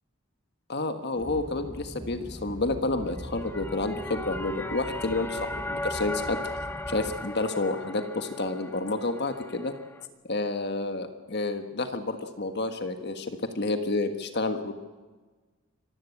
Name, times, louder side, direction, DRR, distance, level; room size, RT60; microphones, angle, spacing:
voice 1, 0.7-6.4 6.9-9.7 10.2-14.7, left 2 dB, 50° left, 7 dB, 1.5 m, -30 dB
sound 1, 1.1-7.2, equal, 15° right, 1.5 m, -42 dB
sound 2, 3.1-10.1, left 1 dB, 10° left, 1.0 m, -37 dB
25.5 x 15.5 x 8.6 m, 1.3 s
head